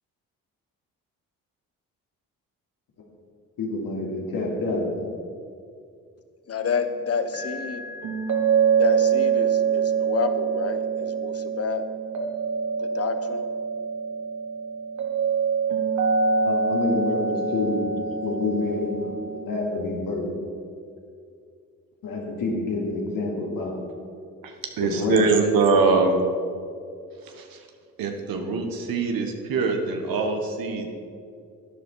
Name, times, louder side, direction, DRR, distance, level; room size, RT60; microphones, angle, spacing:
voice 1, 3.6-5.0 16.4-17.9 18.2-20.3 22.0-23.7 24.8-25.3, left 3 dB, 75° left, -2 dB, 3.1 m, -27 dB
voice 2, 6.5-7.8 8.8-11.8 12.8-13.4, left 6 dB, 45° left, 9 dB, 1.0 m, -29 dB
sound 1, 7.3-19.4, right 6 dB, 55° right, 1.8 m, -25 dB
voice 3, 24.4-26.2 27.2-27.6 28.0-30.9, right 4 dB, 75° right, 3 dB, 1.4 m, -23 dB
12.0 x 9.7 x 4.6 m, 2.3 s
supercardioid pair, 70°, 35 cm